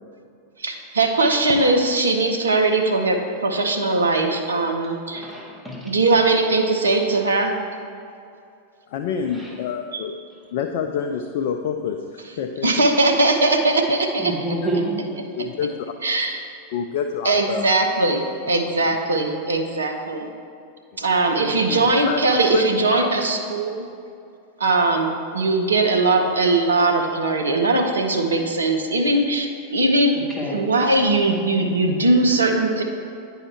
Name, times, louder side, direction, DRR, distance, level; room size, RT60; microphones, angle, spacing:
voice 1, 0.6-5.3 5.8-7.5 9.9-10.0 12.6-14.3 16.0-16.4 17.2-20.3 21.0-23.8 24.6-30.1 30.5-32.8, right 2 dB, 75° right, 3 dB, 0.7 m, -20 dB
voice 2, 5.1-5.9 9.3-9.5 14.2-15.0 21.4-21.8 30.3-30.6, right 1 dB, 5° right, -5 dB, 1.3 m, -28 dB
voice 3, 8.9-10.2 10.5-12.9 15.3-15.9 16.7-17.7 18.9-19.0 20.9-21.0 22.1-23.1, left 7 dB, 50° left, 5 dB, 0.3 m, -27 dB
9.7 x 4.7 x 3.3 m, 2.5 s
figure-of-eight pair, 90°, 0 cm